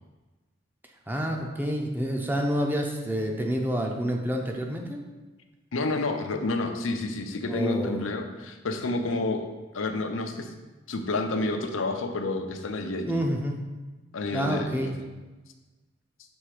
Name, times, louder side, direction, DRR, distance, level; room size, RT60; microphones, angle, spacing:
voice 1, 1.1-5.0 7.5-8.1 13.1-13.6 14.3-15.0, equal, 10° right, 1 dB, 0.6 m, -28 dB
voice 2, 5.7-9.5 9.7-10.5 10.9-13.2 14.1-14.9, left 2 dB, 85° left, 5 dB, 0.6 m, -29 dB
6.3 x 3.3 x 4.8 m, 1.2 s
head